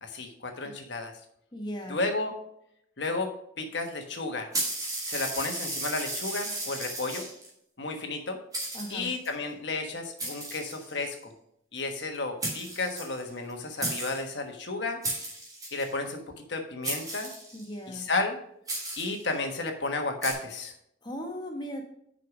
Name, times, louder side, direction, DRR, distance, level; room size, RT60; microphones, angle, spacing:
voice 1, 0.0-1.1 1.9-2.3 3.0-4.5 5.1-7.2 7.8-8.4 8.9-11.3 11.7-15.0 15.7-16.2 16.5-17.3 17.9-18.4 19.0-20.7, left 3 dB, 65° left, 4 dB, 1.3 m, -32 dB
voice 2, 1.5-2.0 8.7-9.1 17.5-18.1 21.0-21.9, equal, 25° left, 2 dB, 1.1 m, -37 dB
sound 1, 4.5-7.5 8.1-8.2 8.5-9.3 10.2-11.2 12.1-12.2 12.4-13.5 13.8-14.3 15.0-15.9 16.8-17.7 18.7-19.3 20.2-20.3, right 2 dB, 20° right, 2.2 m, -34 dB
6.5 x 5.4 x 6.0 m, 0.72 s
head